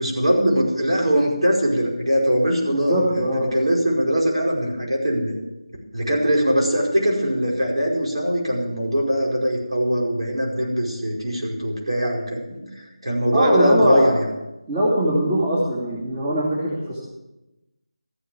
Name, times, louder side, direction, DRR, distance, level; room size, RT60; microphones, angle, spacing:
voice 1, 0.0-5.3 5.9-14.3, equal, 80° right, -2 dB, 5.0 m, -22 dB
voice 2, 2.7-3.5 13.3-14.1 14.7-17.0, equal, 20° right, -6 dB, 2.7 m, -21 dB
13.5 x 8.0 x 7.1 m, 0.99 s
figure-of-eight pair, 170°, 3 cm